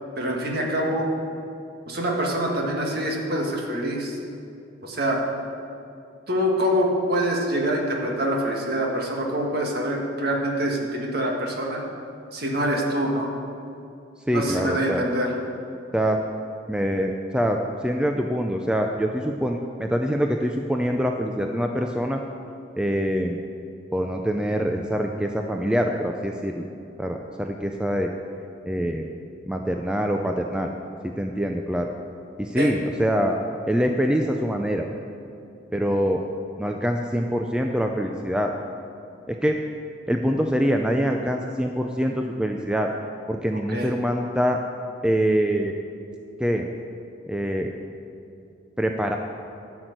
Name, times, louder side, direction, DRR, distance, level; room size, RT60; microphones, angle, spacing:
voice 1, 0.2-1.1 1.9-4.2 4.8-5.2 6.3-11.8 12.3-13.3 14.3-15.3 32.5-32.7 43.7-43.9, equal, 50° right, 0 dB, 1.8 m, -25 dB
voice 2, 14.3-15.0 15.9-16.2 16.7-17.6 17.8-22.2 22.8-23.4 23.9-26.6 27.0-28.1 28.7-29.0 29.5-30.7 31.0-31.9 32.4-33.4 33.7-34.9 35.7-36.2 36.6-38.5 39.3-39.6 40.1-42.9 43.3-44.6 45.0-45.7 46.4-46.7 47.3-47.7 48.8-49.2, equal, 5° right, 2 dB, 0.4 m, -24 dB
12.0 x 6.2 x 7.9 m, 2.6 s
head